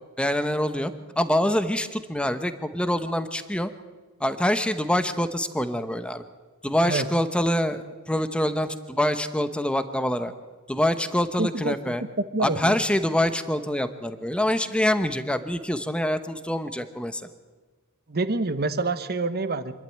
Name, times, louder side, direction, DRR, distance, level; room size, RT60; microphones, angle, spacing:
voice 1, 0.2-3.7 4.2-6.2 6.6-10.3 10.7-12.0 12.4-17.3, left 1 dB, 5° left, 9 dB, 0.9 m, -25 dB
voice 2, 11.4-11.9 12.3-12.8 18.1-19.7, right 3 dB, 45° right, 11 dB, 1.1 m, -27 dB
26.0 x 12.0 x 9.3 m, 1.3 s
head